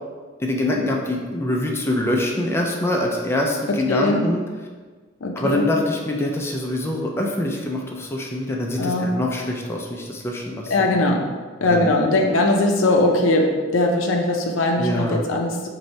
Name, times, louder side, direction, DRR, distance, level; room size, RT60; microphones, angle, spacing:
voice 1, 0.4-4.4 5.4-10.9 11.6-11.9 14.8-15.2, left 1 dB, 15° left, -1 dB, 0.3 m, -24 dB
voice 2, 3.9-4.2 5.2-5.6 8.8-9.1 10.7-11.2 11.6-15.7, left 2 dB, 90° left, 2 dB, 0.5 m, -20 dB
3.1 x 2.6 x 4.1 m, 1.4 s
head